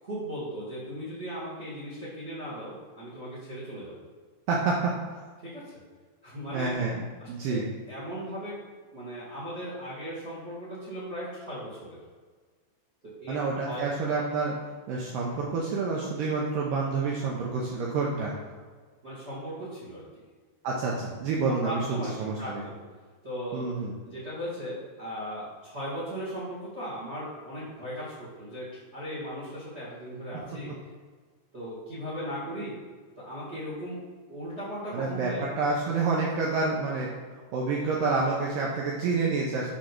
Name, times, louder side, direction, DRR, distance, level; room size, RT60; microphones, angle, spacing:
voice 1, 0.0-4.0 5.4-5.7 6.2-6.7 7.2-7.6 7.9-8.6 8.9-12.0 13.2-13.4 13.6-13.9 19.0-20.2 21.4-22.7 23.2-23.7 24.0-30.7 31.5-32.8 33.1-34.0 34.3-35.4, equal, 40° right, -7 dB, 0.9 m, -37 dB
voice 2, 4.5-4.9 6.5-7.6 13.3-14.6 14.9-18.3 20.6-22.6 23.5-23.9 34.9-37.1 37.5-39.7, right 4 dB, 75° right, -3 dB, 2.0 m, -28 dB
7.1 x 5.1 x 4.5 m, 1.5 s
omnidirectional pair, 4.9 m